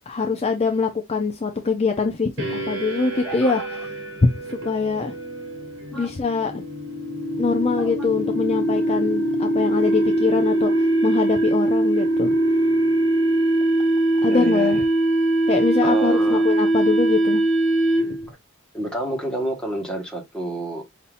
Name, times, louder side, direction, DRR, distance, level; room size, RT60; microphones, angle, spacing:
voice 1, 0.1-3.6 4.6-5.1 5.9-6.6 7.4-12.3 14.2-14.8 15.5-17.4, left 4 dB, 30° left, 0.5 m, -24 dB
sound 1, 2.4-18.3, right 1 dB, 60° right, 1.7 m, -22 dB
voice 2, 3.0-3.7 5.9-6.1 7.8-8.1 14.2-14.9 15.8-16.5 18.3-18.4 18.7-20.8, right 2 dB, 5° left, 1.5 m, -30 dB
5.5 x 2.8 x 2.5 m
head